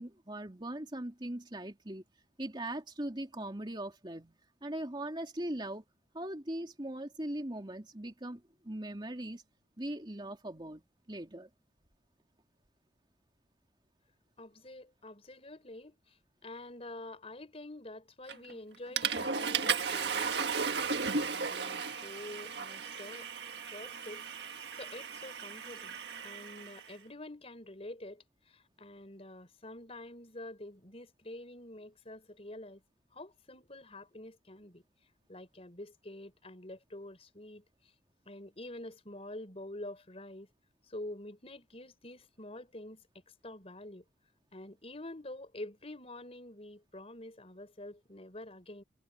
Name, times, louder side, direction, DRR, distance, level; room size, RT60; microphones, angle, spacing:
voice 1, 0.0-2.0 2.4-5.8 6.1-9.4 9.8-11.5, right 1 dB, 25° right, 3.0 m, -40 dB
voice 2, 14.4-16.2 16.4-23.3 23.6-26.0 26.2-32.8 33.1-34.8 35.3-37.6 38.2-40.5 40.9-43.1 43.4-44.0 44.5-48.8, left 1 dB, 35° left, 4.9 m, -47 dB
Water / Toilet flush, 18.3-18.5 19.0-26.8, right 5 dB, 80° right, 1.5 m, -35 dB
head